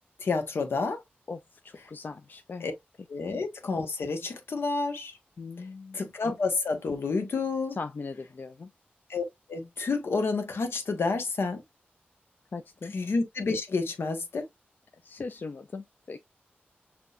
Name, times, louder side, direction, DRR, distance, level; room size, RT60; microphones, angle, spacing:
voice 1, 0.2-1.0 2.6-2.7 3.1-5.1 5.9-7.8 9.1-9.2 9.5-11.6 12.9-14.5, left 4 dB, 80° left, 1.2 m, -29 dB
voice 2, 1.3-2.7 5.4-6.0 7.8-8.7 12.5-12.9 15.0-16.2, left 4 dB, 55° left, 0.5 m, -39 dB
6.1 x 2.8 x 2.5 m
wide cardioid pair, 95°, 4 cm